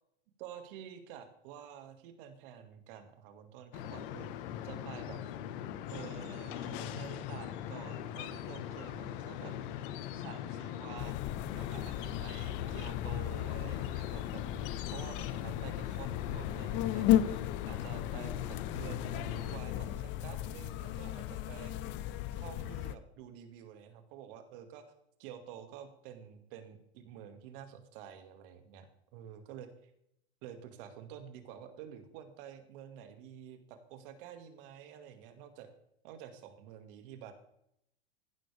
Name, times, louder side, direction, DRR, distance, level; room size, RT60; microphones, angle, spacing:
voice 1, 0.4-4.3 4.6-5.2 5.9-9.6 10.1-11.2 11.5-14.4 14.9-17.4 17.7-21.7 22.4-24.8 25.2-29.9 30.4-35.7 36.0-37.3, right 9 dB, 55° right, 7 dB, 2.3 m, -49 dB
sound 1, 3.7-19.6, left 10 dB, 55° left, 1.4 m, -41 dB
sound 2, 11.0-22.9, left 12 dB, 35° left, 0.7 m, -35 dB
15.0 x 12.0 x 3.5 m, 0.77 s
hypercardioid pair, 125°, 33 cm